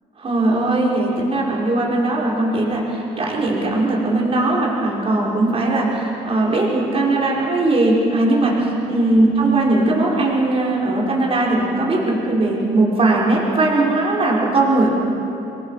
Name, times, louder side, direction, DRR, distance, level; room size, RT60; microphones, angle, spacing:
voice 1, 0.2-14.9, right 2 dB, 35° right, -3 dB, 5.1 m, -19 dB
27.0 x 22.0 x 5.7 m, 2.9 s
cardioid pair, 110°, 17 cm